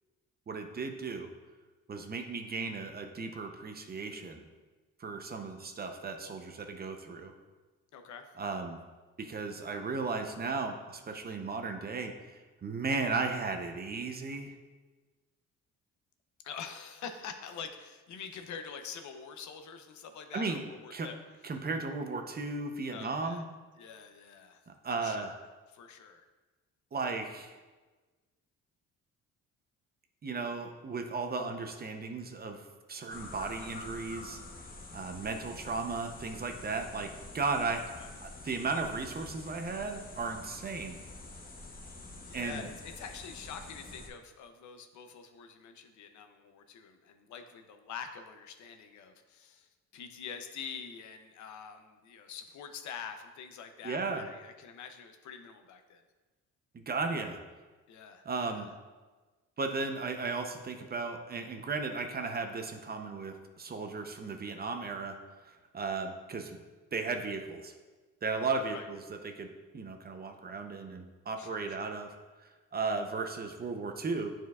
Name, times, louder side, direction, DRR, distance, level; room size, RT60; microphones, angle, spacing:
voice 1, 0.5-1.3 1.9-4.4 5.0-7.3 8.4-8.8 9.2-14.5 20.3-21.1 21.4-23.5 24.8-25.3 26.9-27.5 30.2-32.6 32.9-34.4 34.9-37.8 38.2-41.0 42.3-42.7 53.8-54.2 56.7-57.4 58.2-58.7 59.6-65.2 65.4-66.6 66.9-67.7 68.2-69.5 69.7-72.1 72.4-74.3, right 4 dB, 30° right, 5 dB, 0.7 m, -35 dB
voice 2, 7.9-8.2 16.4-21.2 22.9-23.4 23.8-24.6 24.9-25.4 25.7-26.2 37.5-38.4 42.2-49.7 49.9-56.0 57.9-58.7 68.7-68.9 71.4-71.9, left 7 dB, 70° left, 7 dB, 0.7 m, -46 dB
sound 1, 33.1-44.1, left 2 dB, 30° left, 0.8 m, -47 dB
9.1 x 4.5 x 2.4 m, 1.3 s
cardioid pair, 90°, 30 cm